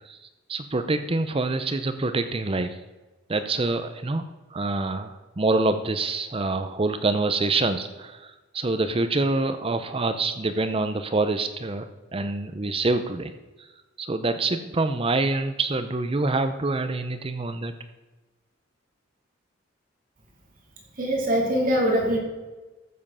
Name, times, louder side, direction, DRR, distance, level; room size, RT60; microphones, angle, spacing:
voice 1, 0.5-2.8 3.3-11.9 12.1-13.3 14.0-17.7, right 3 dB, 30° right, 9 dB, 0.6 m, -26 dB
voice 2, 21.0-22.2, equal, 45° right, -1 dB, 2.7 m, -22 dB
13.5 x 7.5 x 5.5 m, 1.2 s
head